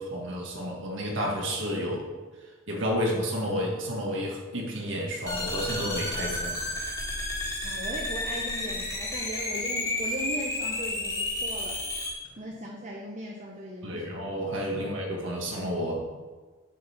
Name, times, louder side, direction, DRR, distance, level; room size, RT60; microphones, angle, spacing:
voice 1, 0.0-2.0 2.7-6.6 13.8-16.0, equal, 65° right, -1 dB, 1.7 m, -31 dB
sound 1, 5.3-12.1, left 2 dB, 15° left, 1.6 m, -31 dB
voice 2, 7.6-11.8 12.4-14.0, right 1 dB, 35° right, -1 dB, 0.8 m, -38 dB
7.4 x 5.3 x 5.7 m, 1.4 s
head